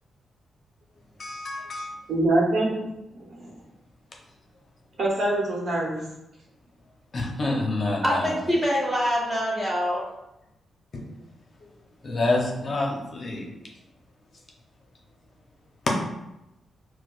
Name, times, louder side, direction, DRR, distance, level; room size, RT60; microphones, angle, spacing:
voice 1, 1.2-2.0 7.1-8.3 10.9-11.0 12.0-13.5, left 2 dB, 45° left, -1 dB, 0.6 m, -27 dB
voice 2, 2.1-2.8 3.1-3.5 5.0-6.0, right 1 dB, 65° right, -3 dB, 0.9 m, -24 dB
voice 3, 8.0-10.1, equal, 15° right, -5 dB, 1.1 m, -24 dB
4.5 x 2.1 x 2.4 m, 0.92 s
cardioid pair, 100°, 0 cm